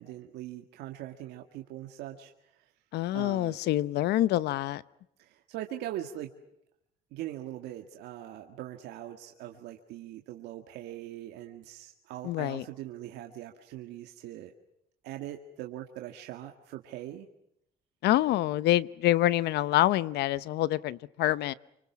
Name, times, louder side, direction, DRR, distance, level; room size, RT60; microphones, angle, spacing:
voice 1, 0.0-2.7 3.1-3.6 5.2-6.3 7.1-14.5 15.0-17.3, right 13 dB, 85° right, 3 dB, 1.9 m, -41 dB
voice 2, 2.9-4.8 12.2-12.6 18.0-21.5, left 14 dB, 80° left, 17 dB, 0.9 m, -26 dB
28.0 x 26.0 x 6.2 m, 0.80 s
cardioid pair, 110°, 17 cm